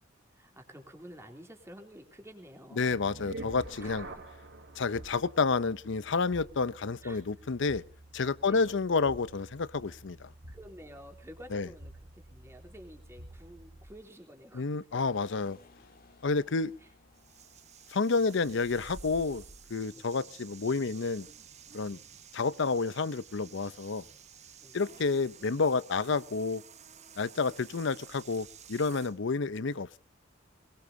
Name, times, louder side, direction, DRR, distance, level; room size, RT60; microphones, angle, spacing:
voice 1, 0.3-3.0 3.8-4.2 7.0-7.2 8.4-8.8 10.5-15.1 16.8-16.9 24.6-24.8, equal, 15° right, 3 dB, 3.1 m, -51 dB
voice 2, 2.8-4.1 4.8-7.8 8.1-10.3 11.5-11.7 14.5-15.6 16.2-16.7 17.9-19.4 19.7-21.3 21.7-22.0 22.3-24.0 24.7-26.6 27.2-30.0, left 4 dB, 65° left, 18 dB, 0.7 m, -30 dB
sound 1, 2.9-14.0, right 1 dB, 65° right, 2.9 m, -49 dB
sound 2, 14.9-20.0, left 3 dB, 50° left, 1.8 m, -62 dB
sound 3, 17.1-29.2, right 6 dB, 35° right, 0.9 m, -52 dB
22.0 x 20.5 x 2.7 m, 0.39 s
head